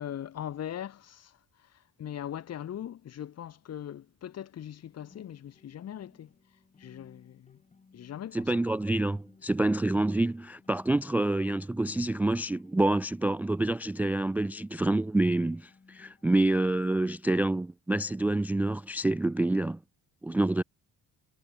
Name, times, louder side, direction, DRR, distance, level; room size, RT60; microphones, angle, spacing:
voice 1, 0.0-6.3 6.8-7.6 7.9-8.5, left 10 dB, 50° left, 5.3 m, -40 dB
sound 1, 4.8-16.2, left 4 dB, 20° left, 7.5 m, -59 dB
voice 2, 8.3-19.8 20.2-20.6, right 2 dB, 5° right, 0.4 m, -27 dB
cardioid pair, 145°, 32 cm